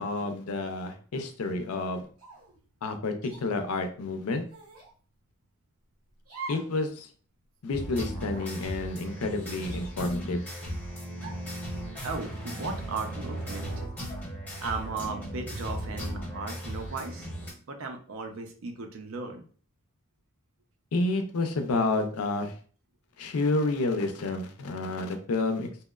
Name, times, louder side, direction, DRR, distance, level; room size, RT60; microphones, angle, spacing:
voice 1, 0.0-2.1 2.8-4.4 6.5-7.1 7.6-10.4 20.9-22.5 23.2-25.7, left 2 dB, 85° left, 6 dB, 0.4 m, -29 dB
sound 1, 2.2-2.6 3.3-3.5 4.5-4.9 6.2-6.8 7.1-7.2 8.1-8.5 9.4-10.3 11.2-11.6, right 3 dB, 90° right, 0.8 m, -44 dB
sound 2, 7.7-17.5, equal, 5° left, 0.6 m, -37 dB
voice 2, 11.7-13.9 14.6-17.3 17.7-19.4, right 4 dB, 65° right, 4 dB, 0.5 m, -36 dB
2.8 x 2.0 x 2.3 m, 0.43 s
head